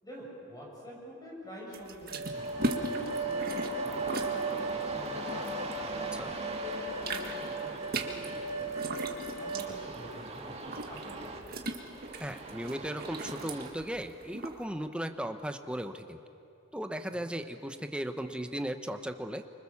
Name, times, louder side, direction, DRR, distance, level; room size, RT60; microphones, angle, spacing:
voice 1, 0.0-3.5 3.8-8.7 9.2-11.4 17.1-17.3, equal, 20° left, -3 dB, 6.8 m, -47 dB
sound 1, 1.7-6.3 6.6-14.6, right 2 dB, 50° right, 1.8 m, -39 dB
sound 2, 2.1-9.7, right 2 dB, 70° right, 2.0 m, -37 dB
sound 3, 2.3-13.7, right 2 dB, 30° right, 2.1 m, -41 dB
voice 2, 12.2-16.2 16.7-19.4, equal, 5° right, 7 dB, 1.0 m, -36 dB
25.5 x 24.5 x 7.2 m, 2.7 s
head